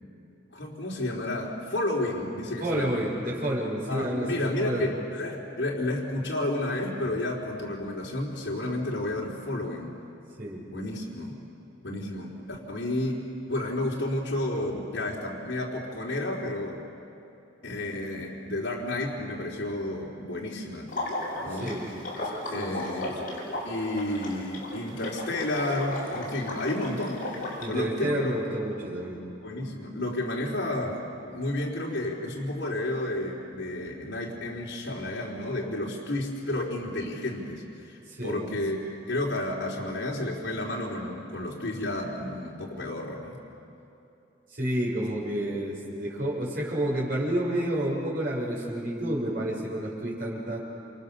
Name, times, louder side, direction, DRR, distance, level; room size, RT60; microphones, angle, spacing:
voice 1, 0.5-3.0 3.9-9.9 10.7-11.4 11.8-13.2 13.5-16.8 17.6-20.9 21.4-21.7 22.5-23.2 23.6-27.2 27.7-28.3 29.4-43.4, left 1 dB, 65° left, -4 dB, 3.8 m, -31 dB
voice 2, 2.6-4.9 10.4-10.6 21.6-21.9 22.6-23.2 27.6-29.2 38.1-38.4 44.5-50.6, right 1 dB, 50° right, -4 dB, 7.1 m, -30 dB
Water / Liquid, 20.9-27.6, left 1 dB, 45° left, 7.5 m, -35 dB
28.5 x 28.0 x 6.9 m, 2.8 s
head